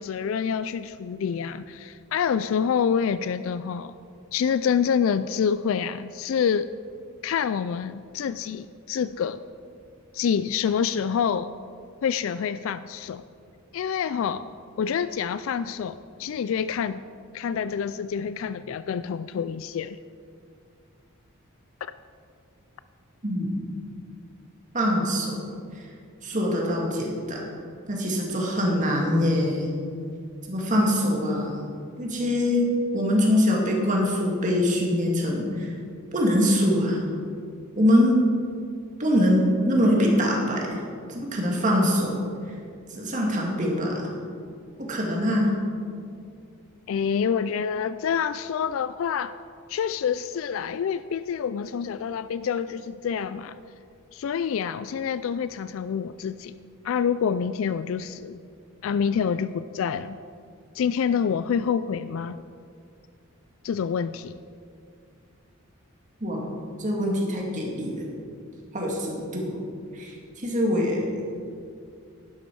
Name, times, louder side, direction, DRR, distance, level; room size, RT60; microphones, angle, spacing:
voice 1, 0.0-3.9 4.3-6.7 7.2-9.4 10.1-11.5 12.0-13.2 13.7-14.5 14.8-17.0 17.3-20.0 21.8-21.9 30.8-30.9 46.9-49.3 49.7-53.6 54.1-56.5 56.8-58.4 58.8-60.2 60.7-62.4 63.6-64.4, left 7 dB, 70° left, 14 dB, 0.3 m, -27 dB
voice 2, 23.2-23.6 24.7-25.4 25.8-25.9 26.2-27.4 27.9-29.7 30.5-31.5 32.0-35.7 36.1-37.0 37.8-38.2 39.0-40.8 41.1-42.2 42.9-44.1 44.8-45.5 66.2-66.5 66.8-68.0 68.7-69.5 69.9-70.1 70.4-71.2, equal, 35° right, -1 dB, 2.1 m, -23 dB
11.5 x 11.5 x 4.7 m, 2.3 s
head